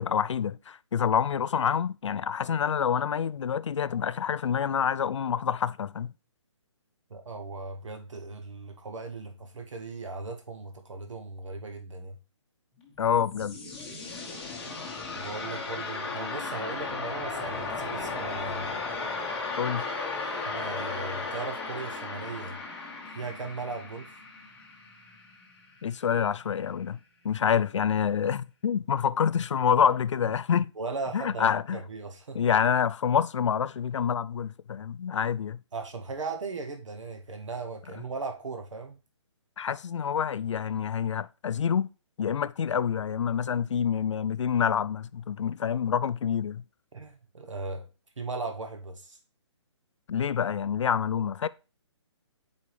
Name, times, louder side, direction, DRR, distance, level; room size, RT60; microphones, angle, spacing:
voice 1, 0.0-6.1 13.0-13.6 19.6-19.8 25.8-27.0 27.2-30.7 31.1-31.8 32.3-35.6 39.6-41.9 42.2-46.6 50.1-51.5, left 8 dB, 80° left, 0.4 m, -27 dB
voice 2, 7.1-12.2 15.1-18.7 20.4-22.6 23.1-24.2 30.8-31.5 31.7-32.4 35.7-39.0 46.9-47.9 48.2-49.2, right 3 dB, 85° right, 1.1 m, -37 dB
sound 1, 12.8-25.7, left 4 dB, 5° left, 1.0 m, -36 dB
sound 2, 16.0-21.4, right 3 dB, 15° right, 4.2 m, -49 dB
7.4 x 4.8 x 3.3 m
hypercardioid pair, 170°, 15 cm